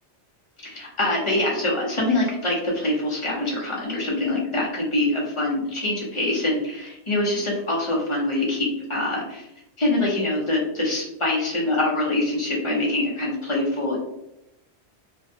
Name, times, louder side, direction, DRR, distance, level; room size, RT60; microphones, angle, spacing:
voice 1, 0.6-9.4 9.8-14.0, left 2 dB, 35° left, -4 dB, 0.6 m, -24 dB
2.5 x 2.1 x 2.6 m, 0.84 s
omnidirectional pair, 1.2 m